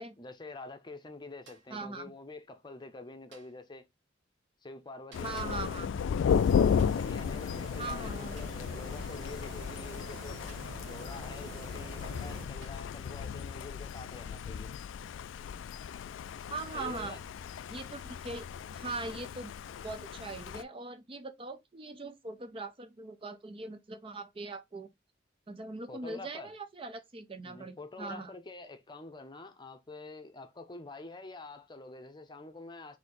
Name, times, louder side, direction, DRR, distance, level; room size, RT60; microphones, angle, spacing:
voice 1, 0.2-3.8 4.6-5.9 6.6-10.4 10.8-14.7 16.7-17.2 25.9-26.5 27.4-33.0, left 3 dB, 25° left, 0.7 m, -47 dB
sound 1, 1.5-1.9 3.3-3.7 5.1-5.5 6.8-7.1 8.4-8.7 10.5-10.8 11.9-12.0 12.6-13.0 14.2-14.4 16.0-16.2, right 4 dB, 70° right, 1.1 m, -59 dB
voice 2, 1.7-2.1 5.2-6.1 7.8-8.3 16.5-17.2 17.7-19.5 19.8-24.9 25.5-28.3, right 3 dB, 30° right, 0.5 m, -41 dB
Thunder, 5.1-20.6, left 7 dB, 80° left, 0.3 m, -34 dB
sound 2, 6.3-12.5, right 1 dB, 85° right, 1.4 m, -46 dB
4.1 x 2.8 x 4.0 m
head